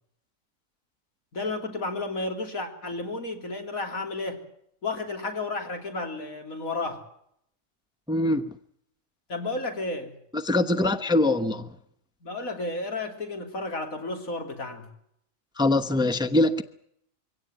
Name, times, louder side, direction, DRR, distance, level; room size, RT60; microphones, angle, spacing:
voice 1, 1.3-4.4 4.8-7.0 9.3-10.1 12.2-14.9, left 2 dB, 85° left, 3.9 m, -32 dB
voice 2, 8.1-8.5 10.3-11.7 15.6-16.6, left 2 dB, 5° right, 0.8 m, -23 dB
24.0 x 17.0 x 9.2 m
omnidirectional pair, 1.4 m